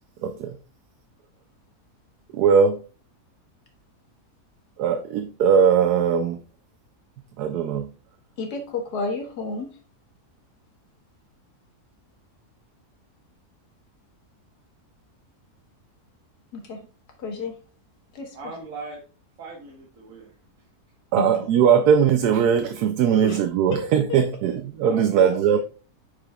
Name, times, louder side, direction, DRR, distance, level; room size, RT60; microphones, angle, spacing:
voice 1, 0.2-0.6 2.3-2.8 4.8-6.4 7.4-7.9 21.1-25.6, right 7 dB, 85° right, 1.1 m, -20 dB
voice 2, 8.4-9.7 16.5-16.8 17.2-17.6 18.1-18.4 21.2-21.5 23.1-23.4 23.7-23.8, left 3 dB, 85° left, 1.9 m, -31 dB
voice 3, 18.3-19.0 19.4-20.4 24.8-25.6, right 3 dB, 60° right, 1.7 m, -38 dB
8.6 x 4.8 x 2.3 m
omnidirectional pair, 1.6 m